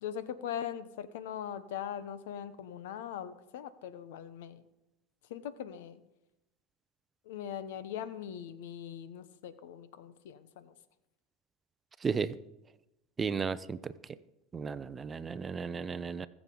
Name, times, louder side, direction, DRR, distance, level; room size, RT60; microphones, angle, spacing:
voice 1, 0.0-4.6 5.3-6.0 7.3-10.7, left 9 dB, 80° left, 13 dB, 0.9 m, -41 dB
voice 2, 12.0-12.3 13.2-13.9 14.5-16.3, right 5 dB, 20° right, 15 dB, 0.6 m, -34 dB
21.5 x 7.2 x 3.9 m, 0.93 s
supercardioid pair, 110°, 0 cm